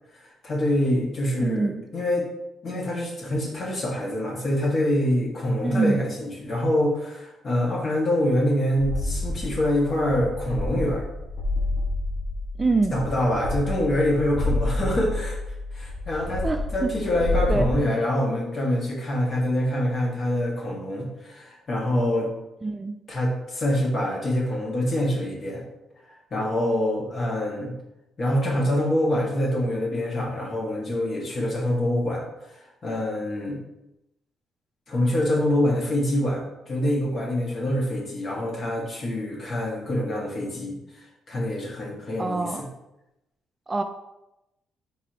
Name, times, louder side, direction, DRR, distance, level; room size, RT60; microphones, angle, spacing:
voice 1, 0.2-2.3 2.6-11.0 12.9-15.4 15.7-16.5 16.7-22.3 23.1-25.6 26.3-27.7 28.2-32.2 32.5-33.6 34.9-36.4 36.7-40.8 41.3-42.7, left 1 dB, 40° left, -2 dB, 1.5 m, -25 dB
voice 2, 1.4-1.9 5.6-6.0 12.6-13.0 16.4-16.9 17.5-17.6 22.6-23.0 42.2-42.7 43.7-43.8, right 3 dB, 25° right, 7 dB, 0.3 m, -25 dB
sound 1, 8.8-17.8, left 2 dB, 70° left, 1.1 m, -29 dB
4.8 x 3.8 x 2.9 m, 0.92 s
cardioid pair, 90°, 0 cm